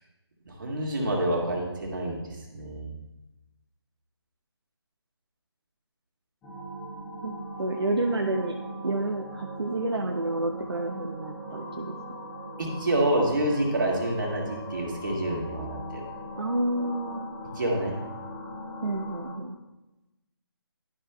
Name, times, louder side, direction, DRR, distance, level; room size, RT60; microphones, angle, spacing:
voice 1, 0.5-2.9 12.6-16.0 17.6-17.9, right 1 dB, 45° right, -1 dB, 1.8 m, -28 dB
sound 1, 6.4-19.4, equal, 5° left, 0.5 m, -40 dB
voice 2, 7.6-8.6 8.8-11.9 16.4-17.3 18.8-19.6, right 2 dB, 65° right, 2 dB, 0.7 m, -29 dB
12.0 x 5.5 x 2.2 m, 1.0 s
figure-of-eight pair, 155°, 14 cm